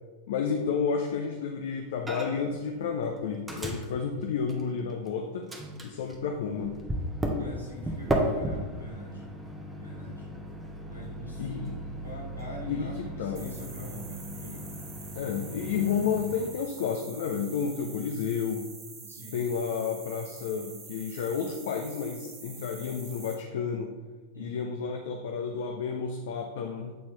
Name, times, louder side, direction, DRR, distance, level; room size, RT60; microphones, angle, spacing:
voice 1, 0.3-5.5 5.8-6.8 11.4-11.7 12.6-13.5 15.1-18.7 19.3-23.9 24.4-27.0, left 6 dB, 55° left, 4 dB, 0.5 m, -31 dB
Microwave oven, 2.1-2.6 2.8-5.1 5.5-16.5, equal, 10° right, 0.8 m, -35 dB
voice 2, 7.4-9.3 9.7-10.3 10.9-14.7 19.0-19.4 24.3-24.7, left 1 dB, 85° right, -3 dB, 1.3 m, -43 dB
sound 1, 13.3-23.3, right 5 dB, 35° right, 1.3 m, -46 dB
7.6 x 4.2 x 3.2 m, 1.3 s
figure-of-eight pair, 90°, 0 cm